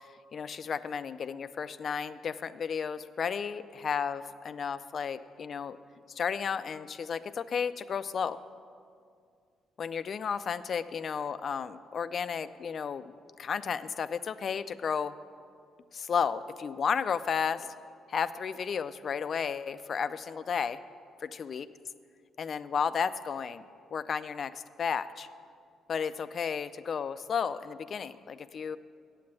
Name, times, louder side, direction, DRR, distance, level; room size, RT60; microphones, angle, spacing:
voice 1, 0.3-5.8 6.2-8.4 9.8-15.1 15.9-17.7 18.1-20.8 21.2-21.7 22.4-23.6 23.9-25.3 25.9-28.8, left 6 dB, 50° left, 13 dB, 0.4 m, -33 dB
8.4 x 7.8 x 8.7 m, 2.2 s
cardioid pair, 90°, 0 cm